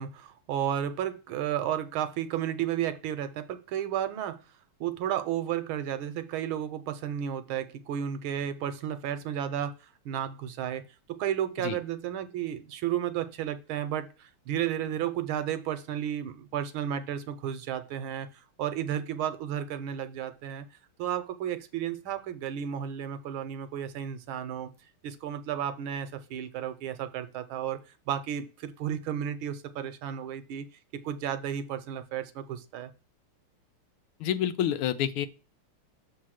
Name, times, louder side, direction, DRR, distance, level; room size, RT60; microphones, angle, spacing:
voice 1, 0.0-4.4 4.8-9.7 10.0-10.8 11.1-18.3 18.6-20.6 21.0-24.7 25.0-27.8 28.1-30.6 31.0-32.9, right 10 dB, 75° right, 11 dB, 1.5 m, -32 dB
voice 2, 34.2-35.3, left 10 dB, 80° left, 11 dB, 1.6 m, -28 dB
6.7 x 3.8 x 6.2 m, 0.32 s
omnidirectional pair, 2.4 m